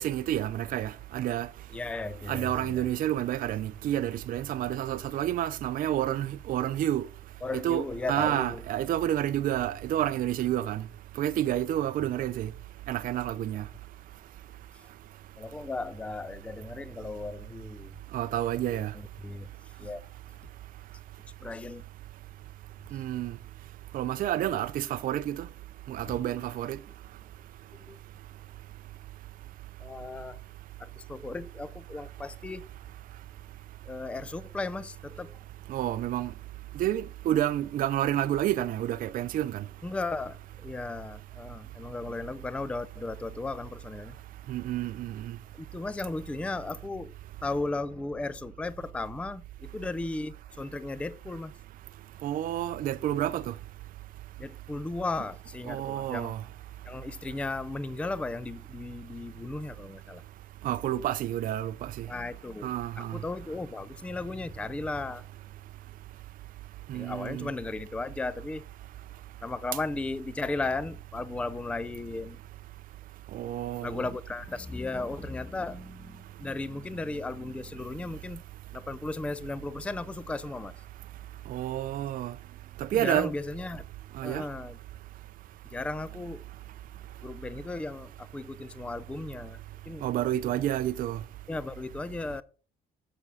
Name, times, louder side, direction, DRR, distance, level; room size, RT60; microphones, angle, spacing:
voice 1, 0.0-1.5 2.3-7.1 7.5-10.8 11.2-12.5 12.9-13.6 18.1-18.9 22.9-23.3 23.9-25.4 25.9-26.8 35.7-36.3 36.8-39.6 44.5-45.1 52.2-53.5 55.7-56.4 60.6-62.1 62.6-63.2 66.9-67.5 73.3-74.0 81.5-82.3 82.8-83.3 84.2-84.4 90.0-91.2, right 12 dB, 55° right, 0.5 m, -29 dB
voice 2, 1.7-2.9 7.4-8.6 14.7-14.9 15.4-17.9 18.6-19.5 19.8-20.0 21.4-21.8 22.9-23.0 26.1-26.2 27.7-28.0 29.8-30.4 30.8-32.7 33.8-35.4 39.8-44.2 45.5-47.1 47.4-51.5 54.4-56.3 56.8-60.2 62.1-65.3 66.9-68.7 69.4-72.4 73.8-78.4 78.7-80.8 82.8-83.8 84.2-84.8 85.6-86.4 87.2-90.1 91.5-92.4, left 3 dB, 5° left, 0.4 m, -36 dB
7.3 x 6.8 x 6.2 m
cardioid pair, 110°, 17 cm